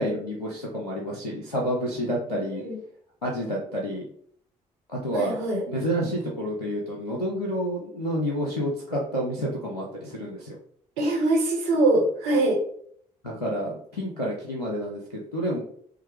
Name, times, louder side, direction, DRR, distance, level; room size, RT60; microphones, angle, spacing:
voice 1, 0.0-2.6 3.2-4.1 4.9-5.4 5.7-10.6 13.2-15.6, equal, 90° left, -3 dB, 0.5 m, -29 dB
voice 2, 2.3-2.8 5.1-5.6 11.0-12.6, right 2 dB, 70° right, -1 dB, 1.0 m, -23 dB
5.4 x 2.0 x 3.2 m, 0.62 s
figure-of-eight pair, 40°, 19 cm